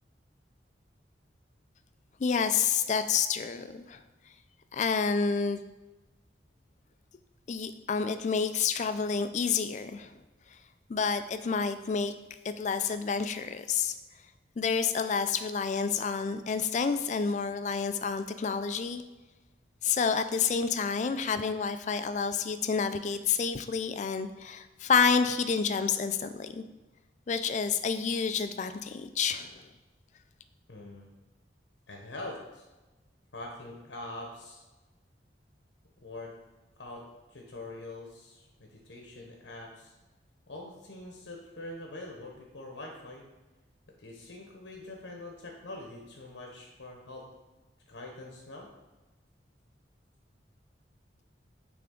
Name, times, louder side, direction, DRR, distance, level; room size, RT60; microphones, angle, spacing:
voice 1, 2.2-4.0 4.7-5.6 7.5-10.1 10.9-12.1 12.4-14.0 14.6-19.0 19.8-26.6 27.3-29.6, left 6 dB, 40° left, 10 dB, 0.3 m, -29 dB
voice 2, 30.7-31.1 31.9-32.6 33.3-34.6 36.0-36.3 36.8-37.0 37.3-39.9 40.5-43.2 44.0-47.3 47.9-48.7, left 2 dB, 85° left, 0 dB, 1.0 m, -44 dB
8.4 x 3.4 x 3.7 m, 1.1 s
head